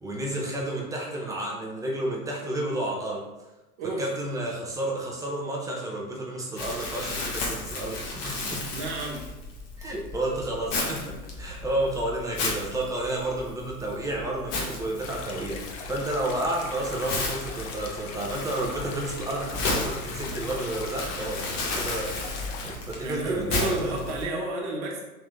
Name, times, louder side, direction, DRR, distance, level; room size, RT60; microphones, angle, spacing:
voice 1, 0.0-3.3 4.0-8.7 9.8-24.0, right 1 dB, 10° right, -2 dB, 0.6 m, -31 dB
voice 2, 3.8-4.1 8.7-9.2 23.0-25.0, right 2 dB, 50° right, -1 dB, 1.1 m, -31 dB
Crumpling crinkling, 6.6-24.2, left 2 dB, 40° left, 1.1 m, -34 dB
sound 1, 15.0-22.8, left 4 dB, 60° left, 0.8 m, -40 dB
3.7 x 2.8 x 3.4 m, 1.0 s
hypercardioid pair, 105°, 44 cm